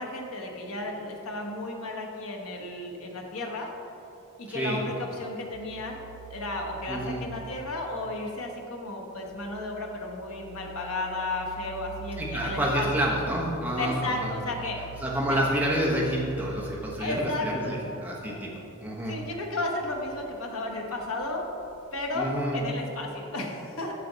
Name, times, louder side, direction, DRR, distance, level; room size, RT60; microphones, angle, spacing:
voice 1, 0.0-3.7 4.4-6.0 6.3-12.9 13.8-14.8 15.3-15.4 17.0-17.8 18.3-18.4 19.1-21.5 21.9-23.9, left 2 dB, 70° left, 1 dB, 1.0 m, -33 dB
sound 1, 5.5-8.5 9.1-18.5 18.9-19.4 19.8-22.8, right 6 dB, 85° right, 0.3 m, -45 dB
voice 2, 6.9-7.2 12.2-14.3 15.0-18.5 18.8-19.1 22.1-22.6, equal, 5° right, -4 dB, 1.0 m, -28 dB
7.6 x 5.9 x 3.9 m, 2.9 s
head